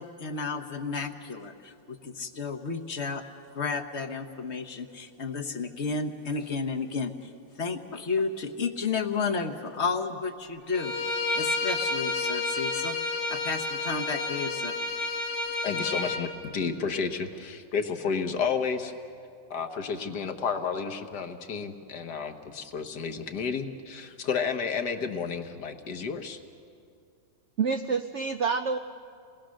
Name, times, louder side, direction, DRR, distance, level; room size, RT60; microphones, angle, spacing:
voice 1, 0.0-3.2 3.5-7.3 7.6-14.7, left 4 dB, 45° left, 7 dB, 1.2 m, -32 dB
Bowed string instrument, 10.7-16.2, left 3 dB, 90° left, 2.6 m, -30 dB
voice 2, 15.6-18.9 19.5-26.4, left 6 dB, 65° left, 6 dB, 1.7 m, -31 dB
voice 3, 27.6-28.8, right 5 dB, 70° right, 7 dB, 0.6 m, -27 dB
28.0 x 20.0 x 6.4 m, 2.4 s
omnidirectional pair, 2.0 m